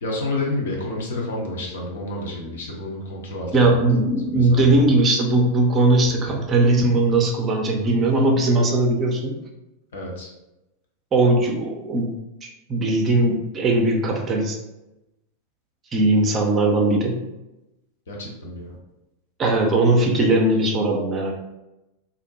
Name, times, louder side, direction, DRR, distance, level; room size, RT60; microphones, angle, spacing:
voice 1, 0.0-3.8 4.3-4.7 9.9-10.3 18.1-18.7, left 2 dB, 60° left, -2 dB, 0.7 m, -29 dB
voice 2, 3.5-9.4 11.1-12.1 12.7-14.6 15.9-17.2 19.4-21.3, right 2 dB, 25° right, 1 dB, 0.5 m, -19 dB
2.5 x 2.1 x 2.8 m, 0.96 s
figure-of-eight pair, 90°, 0 cm